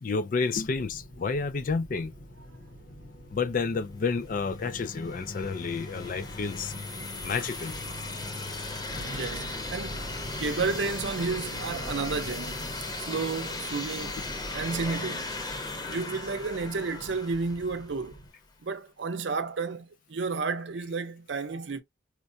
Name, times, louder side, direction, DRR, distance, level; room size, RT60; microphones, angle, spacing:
voice 1, 0.0-2.1 3.3-6.7 7.2-7.7, left 4 dB, 45° left, 0.4 m, -30 dB
sound 1, 0.5-18.3, left 1 dB, 65° left, 1.0 m, -45 dB
sound 2, 4.4-18.1, left 2 dB, 20° left, 0.8 m, -37 dB
voice 2, 8.9-10.1 10.4-15.3 15.8-18.2 18.6-21.8, right 4 dB, 85° right, 0.6 m, -32 dB
4.5 x 2.2 x 2.6 m
head